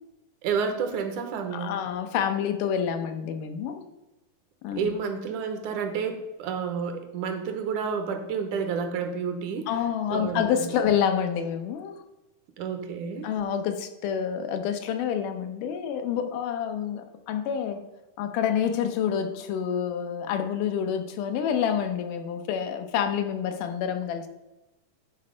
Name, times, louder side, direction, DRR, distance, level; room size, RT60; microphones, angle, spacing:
voice 1, 0.4-1.8 4.7-9.7 10.1-10.7 12.6-13.3, right 6 dB, 75° right, 6 dB, 2.3 m, -30 dB
voice 2, 1.5-3.8 4.6-5.0 9.7-12.0 13.2-17.8 18.2-24.3, left 8 dB, 90° left, 6 dB, 2.5 m, -28 dB
10.5 x 4.3 x 5.0 m, 1.0 s
omnidirectional pair, 3.6 m